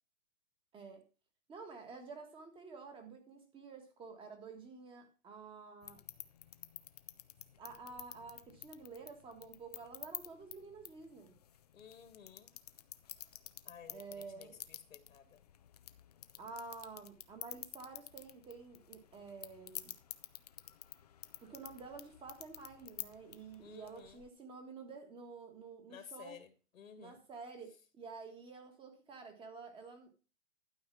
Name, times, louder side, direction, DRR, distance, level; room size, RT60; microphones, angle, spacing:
voice 1, 0.7-1.0 1.5-6.0 7.6-11.3 13.9-14.6 16.4-19.9 21.4-26.4 27.0-30.1, right 4 dB, 15° right, 1.5 m, -50 dB
sound 1, 5.8-24.3, left 10 dB, 30° left, 0.4 m, -51 dB
voice 2, 11.7-12.5 13.7-15.4 23.6-24.2 25.9-26.5 26.8-27.2, left 7 dB, 80° left, 2.0 m, -54 dB
12.0 x 4.9 x 5.9 m
hypercardioid pair, 150°, 40 cm